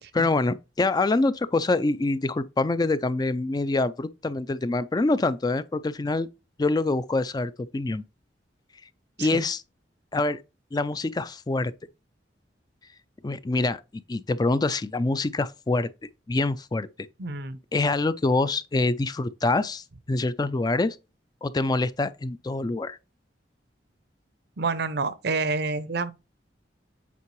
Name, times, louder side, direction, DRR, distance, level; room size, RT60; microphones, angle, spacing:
voice 1, 0.1-6.3 6.6-8.0 9.2-9.6 10.1-10.4 10.7-11.7 13.2-13.8 14.1-15.9 16.3-16.9 17.7-21.0 21.4-23.0, left 2 dB, 20° left, 0.4 m, -25 dB
voice 2, 17.2-17.6 24.6-26.1, right 4 dB, 65° right, 0.7 m, -28 dB
8.4 x 4.5 x 3.1 m
head